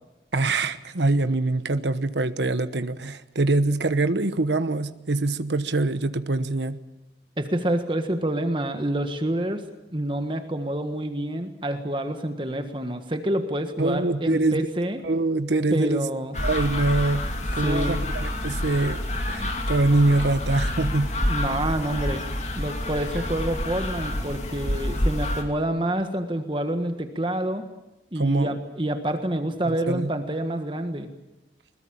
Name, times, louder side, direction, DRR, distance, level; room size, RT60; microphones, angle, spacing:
voice 1, 0.3-6.8 13.8-14.7 15.0-16.1 16.4-19.0 19.3-21.1 28.2-28.6 29.7-30.1, right 2 dB, 80° right, 12 dB, 1.1 m, -24 dB
voice 2, 7.4-9.6 9.9-15.0 15.7-16.4 17.6-18.0 21.2-22.2 22.5-27.6 28.1-31.1, right 1 dB, 25° right, 7 dB, 1.5 m, -27 dB
sound 1, 16.3-25.4, left 1 dB, 40° left, 2.8 m, -28 dB
21.5 x 20.5 x 8.8 m, 0.99 s
head